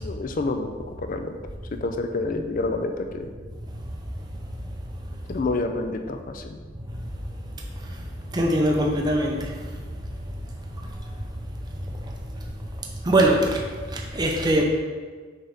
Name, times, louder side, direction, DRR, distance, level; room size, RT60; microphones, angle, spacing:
voice 1, 0.0-1.4 1.8-3.3 5.3-6.6, left 3 dB, 45° left, 6 dB, 0.5 m, -28 dB
voice 2, 8.3-9.4 13.1-13.6 13.9-14.6, right 1 dB, 20° right, 0 dB, 0.6 m, -21 dB
7.0 x 4.0 x 3.5 m, 1.5 s
head